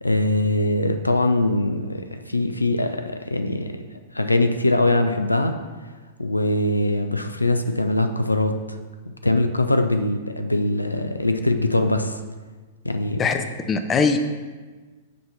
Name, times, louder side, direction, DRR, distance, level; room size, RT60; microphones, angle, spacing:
voice 1, 0.0-3.8 4.1-5.5 6.2-8.5 9.2-12.2 12.8-13.2, left 2 dB, 90° left, 7 dB, 0.3 m, -22 dB
voice 2, 13.2-14.2, left 5 dB, 20° left, 7 dB, 0.4 m, -21 dB
6.0 x 2.9 x 5.6 m, 1.3 s
figure-of-eight pair, 105°, 0 cm